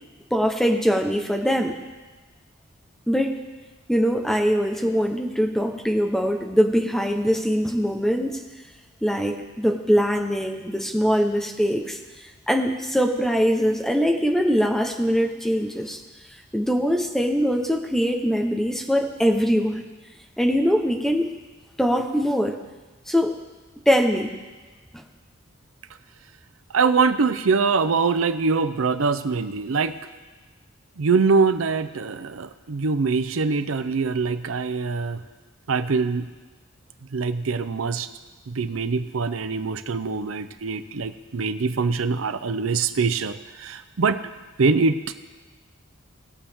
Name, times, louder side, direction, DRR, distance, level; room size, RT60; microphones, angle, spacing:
voice 1, 0.3-1.8 3.1-3.3 3.9-8.4 9.0-12.0 12.5-16.0 16.5-19.8 20.4-21.3 21.8-22.6 23.1-23.3 23.9-24.3 24.9-25.0, equal, ahead, 2 dB, 0.9 m, -22 dB
voice 2, 26.7-30.0 31.0-35.2 35.7-36.3 37.1-38.1 38.5-44.2 44.6-45.1, right 4 dB, 85° right, 11 dB, 0.6 m, -23 dB
20.0 x 7.1 x 3.6 m, 1.3 s
head